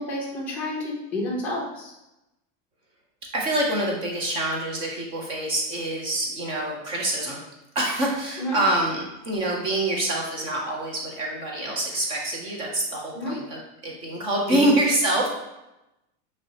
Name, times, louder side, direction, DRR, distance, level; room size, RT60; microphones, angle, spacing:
voice 1, 0.0-1.9 8.4-8.6 13.1-13.4 14.5-14.8, left 1 dB, 5° left, -6 dB, 0.7 m, -29 dB
voice 2, 3.3-7.4 7.8-15.3, right 1 dB, 15° right, -1 dB, 0.3 m, -26 dB
5.4 x 3.0 x 2.7 m, 0.91 s
supercardioid pair, 170°, 38 cm